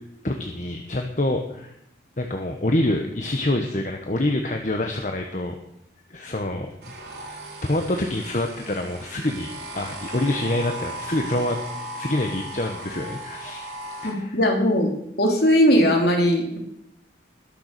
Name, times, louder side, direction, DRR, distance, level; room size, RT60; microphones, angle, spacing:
voice 1, 0.2-1.7 2.2-5.6 6.1-6.7 7.6-11.6 11.9-13.7 14.0-14.4, left 1 dB, 40° left, 4 dB, 1.2 m, -26 dB
sound 1, 6.8-14.1, right 1 dB, 60° right, 3.9 m, -37 dB
voice 2, 14.0-14.9 15.2-16.6, equal, 60° left, 2 dB, 3.3 m, -19 dB
20.5 x 7.0 x 6.8 m, 0.78 s
head